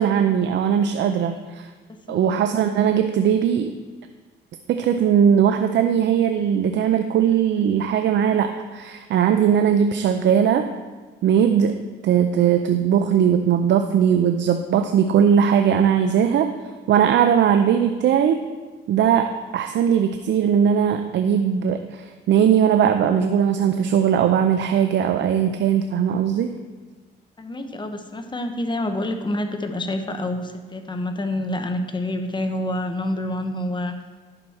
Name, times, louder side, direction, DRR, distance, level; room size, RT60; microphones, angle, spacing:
voice 1, 0.0-1.7 2.1-3.7 4.7-10.7 11.2-16.5 16.9-18.4 18.9-26.5, right 8 dB, 65° right, 7 dB, 0.5 m, -19 dB
voice 2, 1.9-2.4 27.4-34.0, left 1 dB, 25° left, 6 dB, 1.0 m, -27 dB
10.5 x 6.2 x 4.3 m, 1.4 s
cardioid pair, 90°, 20 cm